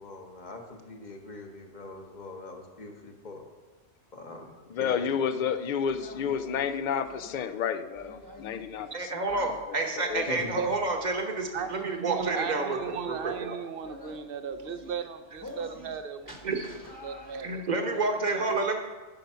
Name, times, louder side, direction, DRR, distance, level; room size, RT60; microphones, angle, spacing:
voice 1, 0.0-3.5 4.1-5.5 10.3-10.6, left 2 dB, 40° left, 4 dB, 1.1 m, -42 dB
voice 2, 4.7-9.2 10.0-10.3, left 7 dB, 55° left, 12 dB, 0.5 m, -30 dB
sound 1, 5.8-7.4 8.0-8.9 9.3-9.6 10.1-11.2 11.5-11.8 12.2-12.5 12.8-13.4 13.8-14.2 14.5-14.9 15.4-16.0 16.2-17.6, left 1 dB, 15° left, 1.2 m, -47 dB
voice 3, 8.9-13.5 16.4-16.6 17.4-18.8, right 3 dB, 40° right, 4 dB, 1.1 m, -29 dB
voice 4, 12.0-16.5 17.0-17.7, right 6 dB, 60° right, 10 dB, 0.7 m, -36 dB
10.5 x 5.3 x 5.6 m, 1.3 s
omnidirectional pair, 1.2 m